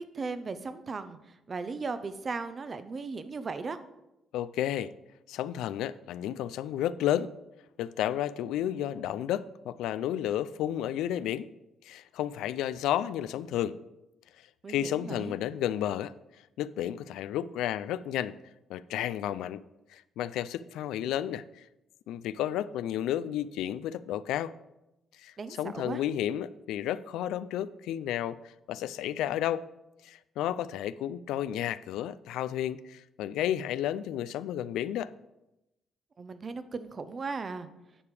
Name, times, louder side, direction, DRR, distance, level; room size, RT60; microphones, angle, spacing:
voice 1, 0.0-3.8 14.6-15.3 25.4-26.0 36.2-37.7, right 4 dB, 40° right, 12 dB, 0.7 m, -37 dB
voice 2, 4.3-4.9 5.3-7.3 7.8-11.5 11.8-13.8 14.4-16.1 16.6-18.4 18.7-19.6 19.9-21.7 22.1-24.5 25.2-29.7 30.0-35.1, left 11 dB, 90° left, 16 dB, 0.3 m, -32 dB
9.7 x 5.1 x 4.8 m, 0.93 s
cardioid pair, 90°, 0 cm